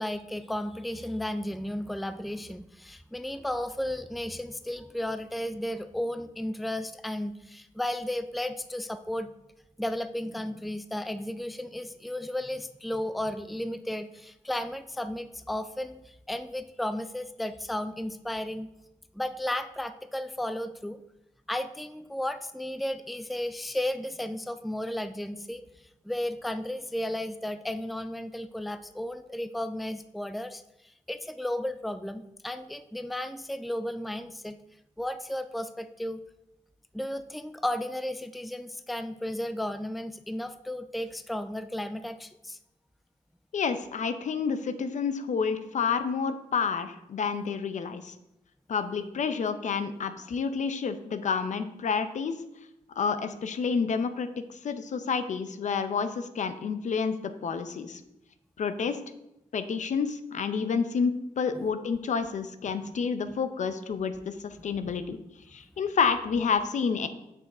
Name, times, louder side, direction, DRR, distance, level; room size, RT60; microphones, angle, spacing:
voice 1, 0.0-9.3 9.8-18.7 19.1-21.0 21.5-25.6 26.0-34.6 35.0-36.2 36.9-42.6 61.5-61.6 64.8-64.9, left 1 dB, ahead, 11 dB, 0.4 m, -34 dB
voice 2, 43.5-48.1 48.7-52.3 53.0-54.3 54.6-57.2 57.4-58.0 58.6-59.0 59.5-65.2 65.5-67.1, left 5 dB, 65° left, 10 dB, 0.7 m, -29 dB
6.8 x 6.3 x 4.2 m, 0.88 s
cardioid pair, 85°, 13 cm